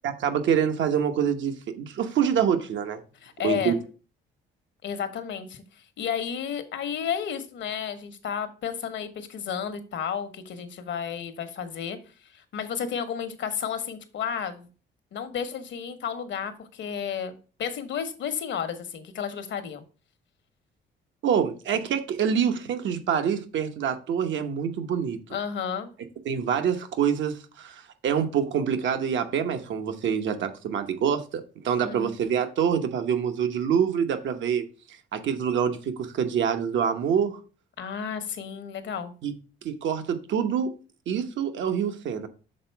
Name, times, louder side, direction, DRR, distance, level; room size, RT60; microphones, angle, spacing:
voice 1, 0.0-3.0 3.4-3.8 21.2-25.2 26.2-34.6 35.1-37.4 39.2-39.3 39.6-40.7 41.1-42.3, right 8 dB, 70° right, 1.0 m, -26 dB
voice 2, 3.2-3.8 4.8-12.0 12.3-14.7 15.1-19.8 25.3-25.9 31.8-32.1 37.8-39.1, left 8 dB, 70° left, 1.0 m, -32 dB
6.5 x 3.9 x 4.5 m
cardioid pair, 90°, 20 cm